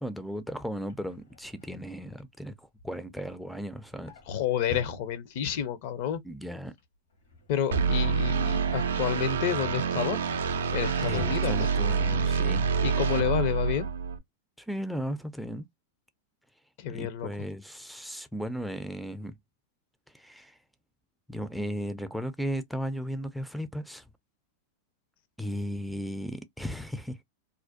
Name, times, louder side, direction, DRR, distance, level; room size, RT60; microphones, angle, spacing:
voice 1, 0.0-4.1 6.2-6.7 11.1-12.7 14.6-15.7 16.9-19.4 20.1-20.6 21.3-24.0 25.4-27.2, equal, ahead, 0.3 m, -36 dB
Drawer open or close, 0.8-5.6 6.0-6.3 6.6-8.8 9.2-12.2 12.6-12.8 13.0-13.1, left 1 dB, 80° left, 1.1 m, -49 dB
voice 2, 4.3-6.2 7.5-10.2 10.7-11.7 12.8-13.9 16.8-17.3, left 9 dB, 60° left, 0.5 m, -30 dB
sound 1, 7.7-14.2, right 5 dB, 80° right, 0.4 m, -27 dB
2.4 x 2.1 x 2.4 m
hypercardioid pair, 105°, 0 cm